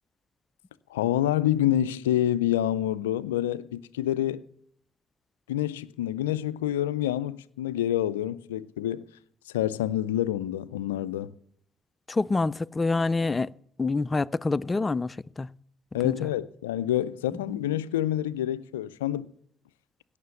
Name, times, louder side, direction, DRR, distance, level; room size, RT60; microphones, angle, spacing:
voice 1, 0.9-4.4 5.5-9.1 9.5-11.3 15.9-19.3, left 12 dB, 90° left, 0.4 m, -27 dB
voice 2, 12.1-13.5 13.8-15.5 16.0-16.1 17.5-17.6, left 3 dB, 30° left, 0.5 m, -26 dB
17.0 x 6.5 x 7.0 m
hypercardioid pair, 50°, 0 cm